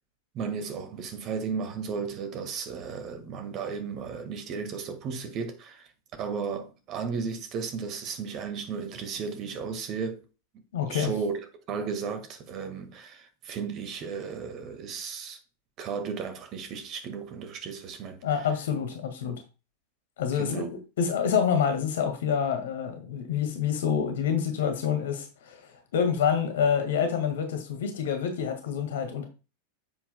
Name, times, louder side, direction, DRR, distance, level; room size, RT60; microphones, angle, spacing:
voice 1, 0.3-10.2 10.9-11.4 11.7-15.4 15.8-18.3 20.3-20.7, right 6 dB, 35° right, 1.6 m, -34 dB
voice 2, 10.7-11.1 18.2-19.4 20.2-20.7 21.0-25.6 25.9-29.3, left 7 dB, 60° left, 1.7 m, -27 dB
9.8 x 7.6 x 2.2 m
figure-of-eight pair, 90°, 0 cm